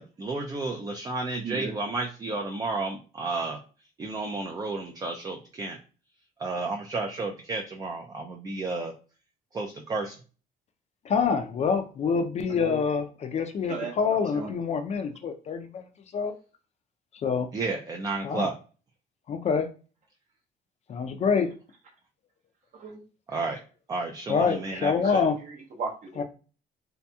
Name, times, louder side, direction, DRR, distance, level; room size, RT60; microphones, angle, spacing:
voice 1, 0.0-3.6 4.0-5.8 6.4-8.9 9.5-10.2 17.5-18.5 23.3-23.6 23.9-25.3, right 3 dB, 20° right, 2 dB, 0.3 m, -32 dB
voice 2, 11.0-16.3 17.1-17.5 18.2-18.5 19.3-19.7 20.9-21.5 24.3-25.4 26.2-26.3, left 5 dB, 40° left, 7 dB, 0.4 m, -26 dB
voice 3, 12.5-12.8 13.7-14.5 22.7-23.0 23.3-23.5 24.7-26.2, right 4 dB, 50° right, 1 dB, 0.7 m, -37 dB
2.7 x 2.5 x 2.2 m, 0.36 s
cardioid pair, 110°, 17 cm